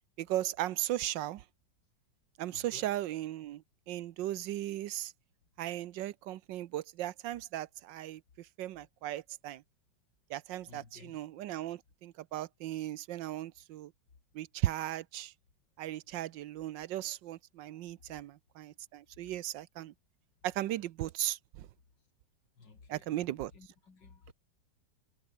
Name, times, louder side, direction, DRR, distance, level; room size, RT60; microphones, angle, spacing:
voice 1, 0.2-1.4 2.4-3.6 3.9-5.1 5.6-8.2 8.6-9.6 10.3-13.9 14.3-15.3 15.8-19.9 20.4-21.7 22.9-23.5, right 14 dB, 80° right, 1.4 m, -37 dB
voice 2, 2.5-3.0 10.6-11.2 22.6-23.1 23.5-24.3, left 4 dB, 70° left, 3.8 m, -55 dB
omnidirectional pair, 2.0 m